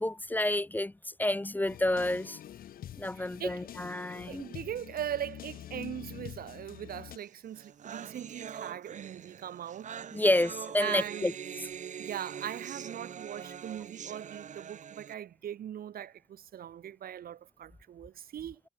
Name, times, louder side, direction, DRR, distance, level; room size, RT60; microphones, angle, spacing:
voice 1, 0.0-2.4 3.0-4.5 10.1-11.3, left 1 dB, 10° left, 0.6 m, -29 dB
sound 1, 1.7-7.2, left 11 dB, 75° left, 0.5 m, -46 dB
voice 2, 3.2-3.6 4.3-9.9 10.8-11.3 12.0-18.6, right 10 dB, 80° right, 1.2 m, -40 dB
sound 2, 7.3-7.4 7.5-15.1, right 8 dB, 55° right, 0.7 m, -43 dB
cardioid pair, 100°, 15 cm